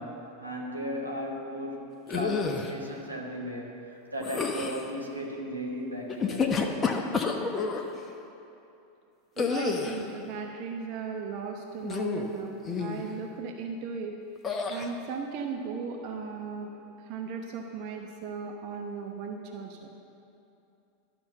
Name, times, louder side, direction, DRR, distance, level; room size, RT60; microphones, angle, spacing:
voice 1, 0.0-6.5, equal, 90° right, -2 dB, 1.4 m, -36 dB
sound 1, 2.1-2.7 4.2-4.9 6.1-7.8 9.4-10.1 11.8-12.3 12.7-13.0 14.4-14.9, left 5 dB, 20° left, 0.9 m, -29 dB
voice 2, 9.4-14.1 14.7-16.7 17.0-19.9, right 5 dB, 45° right, 2 dB, 0.9 m, -37 dB
11.5 x 5.9 x 7.7 m, 2.7 s
figure-of-eight pair, 85°, 0 cm